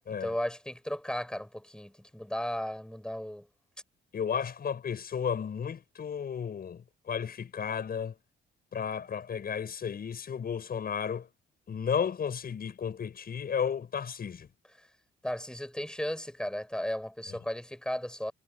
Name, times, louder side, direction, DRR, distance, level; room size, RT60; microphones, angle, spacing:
voice 1, 0.1-3.5 15.2-18.3, equal, 5° left, 5.2 m, -35 dB
voice 2, 4.1-6.8 7.1-8.1 8.7-11.3 11.7-14.5, left 7 dB, 50° left, 6.0 m, -33 dB
cardioid pair, 90°, 20 cm